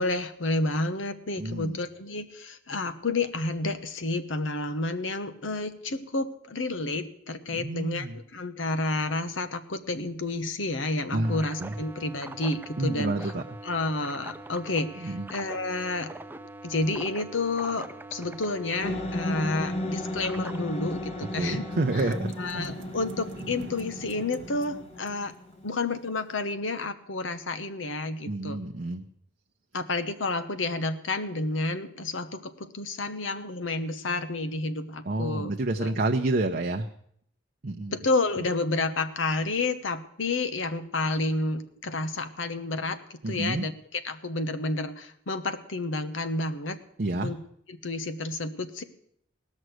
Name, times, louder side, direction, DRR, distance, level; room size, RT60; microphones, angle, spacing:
voice 1, 0.0-13.1 13.6-16.1 16.6-21.7 21.9-25.3 25.6-28.6 29.7-35.5 35.8-35.9 37.9-46.8 47.2-47.4 47.7-48.8, left 2 dB, 85° left, 11 dB, 1.0 m, -30 dB
voice 2, 1.4-1.8 7.5-8.2 11.1-11.7 12.8-13.4 15.0-15.3 21.3-22.3 22.5-22.7 28.3-29.0 35.1-36.9 37.6-38.0 43.2-43.7 47.0-47.3, right 2 dB, 50° right, 3 dB, 0.7 m, -29 dB
sound 1, 11.2-22.2, right 2 dB, 10° right, 0.4 m, -43 dB
sound 2, 18.8-26.1, left 1 dB, 35° left, 0.8 m, -35 dB
sound 3, 21.9-25.7, right 2 dB, 80° right, 0.9 m, -44 dB
18.0 x 6.4 x 7.9 m, 0.68 s
head